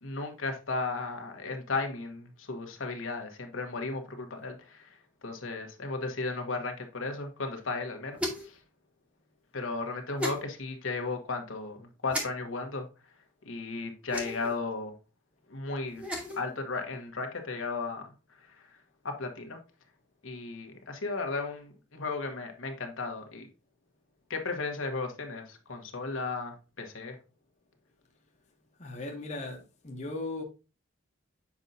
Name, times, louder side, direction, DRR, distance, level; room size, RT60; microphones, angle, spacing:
voice 1, 0.0-5.0 5.2-8.6 9.5-12.9 13.4-14.9 15.5-16.0 16.4-18.1 18.4-18.7 19.0-19.6 20.2-23.5 24.3-27.2, left 3 dB, 75° left, 1.2 m, -35 dB
sound 1, 8.2-8.6 10.2-10.4 12.1-12.3 14.1-14.6 15.9-16.4, equal, 5° right, 1.1 m, -34 dB
voice 2, 28.8-30.4, left 2 dB, 35° left, 0.9 m, -37 dB
7.2 x 5.2 x 2.7 m
head